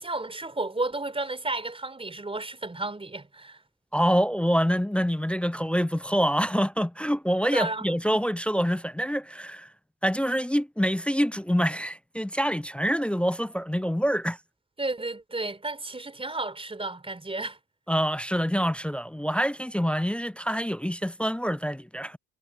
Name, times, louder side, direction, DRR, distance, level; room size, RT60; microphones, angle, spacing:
voice 1, 0.0-3.6 7.4-7.9 14.8-17.6, right 2 dB, 15° right, 4.0 m, -32 dB
voice 2, 3.9-9.7 10.0-14.4 17.9-22.2, equal, 5° left, 0.4 m, -26 dB
hypercardioid pair, 75°, 43 cm